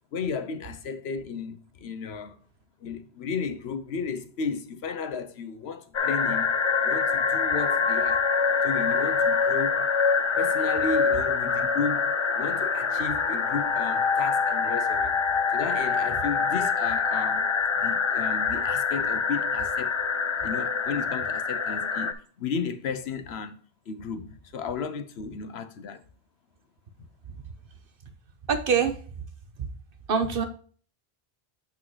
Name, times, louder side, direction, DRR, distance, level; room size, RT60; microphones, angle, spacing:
voice 1, 0.1-2.4 2.8-6.5 6.8-8.3 8.6-9.8 10.4-15.2 15.5-17.5 17.7-20.0 20.4-23.6 23.9-26.0, left 5 dB, 85° left, 1.0 m, -34 dB
sound 1, 5.9-22.1, left 5 dB, 40° left, 0.4 m, -25 dB
voice 2, 28.5-29.2 29.6-29.7 30.1-30.5, right 6 dB, 60° right, 1.1 m, -25 dB
7.2 x 6.1 x 3.1 m
omnidirectional pair, 1.0 m